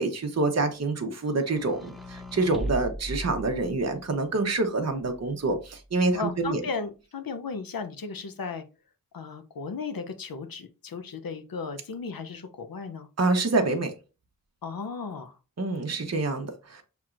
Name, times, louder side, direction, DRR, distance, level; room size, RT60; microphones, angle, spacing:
voice 1, 0.0-6.6 13.2-13.9 15.6-16.8, right 3 dB, 45° right, 0.8 m, -27 dB
sound 1, 1.4-4.1 5.0-5.9, equal, ahead, 0.6 m, -38 dB
voice 2, 6.1-8.6 9.1-13.1 14.6-15.3, left 5 dB, 75° left, 0.6 m, -35 dB
6.0 x 2.9 x 2.5 m
wide cardioid pair, 75°, 35 cm